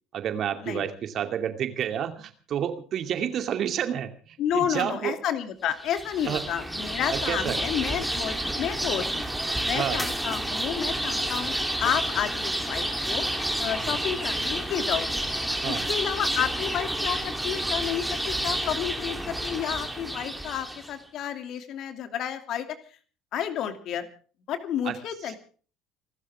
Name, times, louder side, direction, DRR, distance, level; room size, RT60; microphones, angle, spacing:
voice 1, 0.1-5.1 6.2-6.4 7.1-7.6 9.7-10.0 13.8-14.0 15.6-15.9 24.8-25.0 25.2-25.3, right 9 dB, 45° right, 7 dB, 2.4 m, -30 dB
voice 2, 4.4-9.2 9.6-13.3 13.6-15.1 15.7-22.7 23.3-24.1 24.5-25.4, left 9 dB, 50° left, 8 dB, 2.7 m, -31 dB
sound 1, 5.8-20.9, right 1 dB, 5° right, 3.2 m, -30 dB
29.0 x 12.5 x 3.5 m, 0.42 s
figure-of-eight pair, 60°, 0 cm